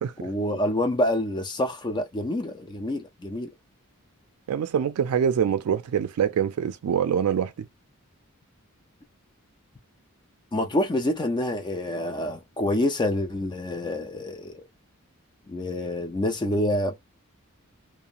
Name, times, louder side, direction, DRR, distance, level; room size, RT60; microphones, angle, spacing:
voice 1, 0.2-3.5 10.5-14.6 15.5-17.1, left 1 dB, 20° left, 0.4 m, -27 dB
voice 2, 4.5-7.5, right 8 dB, 85° right, 0.3 m, -25 dB
2.8 x 2.1 x 2.4 m
head